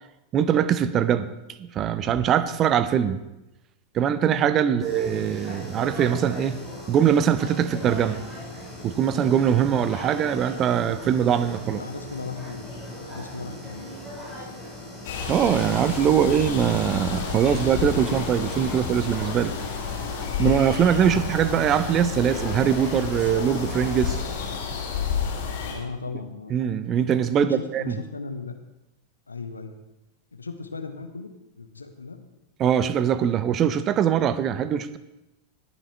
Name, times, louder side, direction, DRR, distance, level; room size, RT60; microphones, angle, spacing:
voice 1, 0.3-1.3 1.6-3.2 3.9-6.6 6.9-8.2 8.8-11.8 15.3-19.5 20.4-24.2 26.5-27.8 32.6-35.0, right 9 dB, 30° right, 14 dB, 0.6 m, -22 dB
sound 1, 4.8-24.6, equal, 10° right, 4.1 m, -38 dB
voice 2, 11.7-12.7 13.0-14.5 21.1-21.3 25.6-26.6 27.3-28.6 29.3-29.7 30.3-31.3 31.6-32.2, left 4 dB, 80° left, 7 dB, 1.0 m, -37 dB
sound 2, 15.0-25.7, left 6 dB, 50° left, 3.2 m, -31 dB
19.0 x 7.3 x 3.3 m, 0.94 s
figure-of-eight pair, 90°, 0 cm